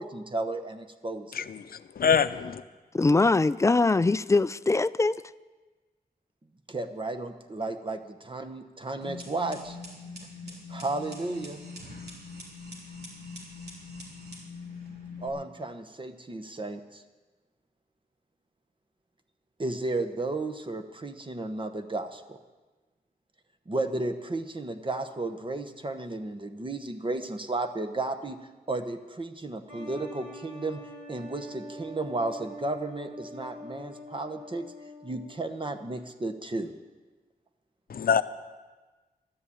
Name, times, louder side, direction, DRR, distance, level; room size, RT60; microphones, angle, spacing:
voice 1, 0.0-1.5 6.7-9.8 10.7-11.6 15.2-17.0 19.6-22.4 23.7-28.4 28.7-30.8 31.1-34.7 35.0-36.7, right 2 dB, 30° right, 1.0 m, -33 dB
voice 2, 1.3-2.6 37.9-38.2, left 7 dB, 65° left, 0.7 m, -25 dB
voice 3, 2.9-5.2, left 3 dB, 20° left, 0.3 m, -22 dB
sound 1, 9.0-15.3, left 3 dB, 85° right, 3.7 m, -43 dB
sound 2, 29.7-36.0, equal, 55° right, 4.1 m, -44 dB
12.5 x 10.5 x 8.5 m
wide cardioid pair, 95°, 16 cm